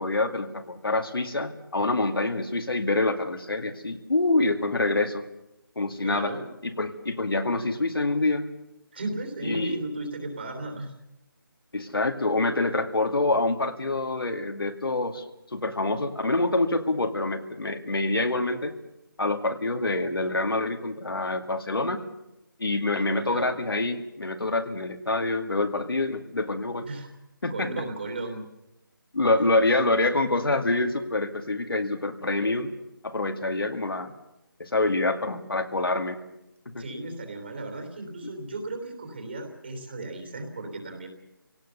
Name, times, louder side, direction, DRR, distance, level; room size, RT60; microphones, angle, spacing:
voice 1, 0.0-5.2 5.8-6.3 6.6-8.5 9.4-9.8 11.7-15.3 15.5-18.7 19.2-22.0 22.6-26.9 27.4-27.8 29.1-32.7 33.0-34.1 34.6-36.2 36.7-36.8 38.2-38.3, left 2 dB, 80° left, 6 dB, 2.4 m, -26 dB
voice 2, 6.0-6.5 8.9-10.9 22.9-23.5 26.9-27.1 27.5-28.4 29.4-29.5 36.7-41.1, right 2 dB, 30° right, 5 dB, 3.3 m, -35 dB
29.5 x 17.5 x 7.0 m, 0.91 s
figure-of-eight pair, 175°, 12 cm